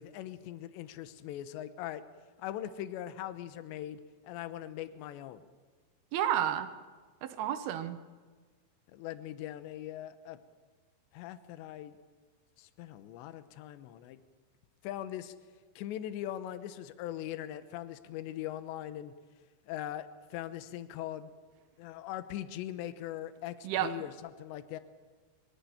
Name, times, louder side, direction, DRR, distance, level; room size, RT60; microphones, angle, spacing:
voice 1, 0.0-2.0 2.4-5.5 8.9-10.4 11.1-12.0 12.6-14.2 14.8-15.3 15.8-19.1 19.7-21.3 21.8-24.8, left 12 dB, 80° left, 11 dB, 3.1 m, -41 dB
voice 2, 6.1-6.7 7.2-8.0 23.6-23.9, right 11 dB, 70° right, 9 dB, 2.7 m, -31 dB
23.5 x 13.5 x 9.5 m, 1.5 s
omnidirectional pair, 5.2 m